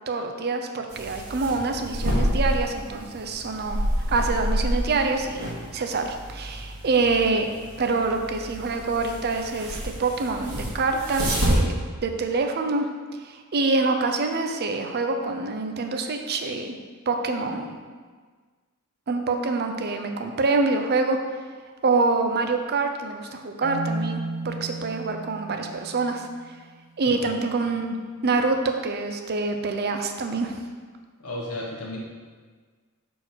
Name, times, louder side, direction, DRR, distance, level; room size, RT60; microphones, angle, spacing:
voice 1, 0.1-5.5 5.7-7.5 7.8-11.8 12.0-12.9 13.3-16.8 17.1-17.8 19.1-21.2 21.8-26.3 27.0-28.0 28.2-30.5, right 3 dB, 45° right, 5 dB, 0.5 m, -26 dB
sound 1, 0.9-11.5, equal, 85° right, 1.7 m, -29 dB
Marimba xylophone, 23.6-26.6, right 2 dB, 30° left, 1.0 m, -34 dB
voice 2, 27.0-27.7 31.2-32.0, left 1 dB, 75° left, -3 dB, 1.4 m, -35 dB
6.3 x 4.5 x 4.4 m, 1.5 s
head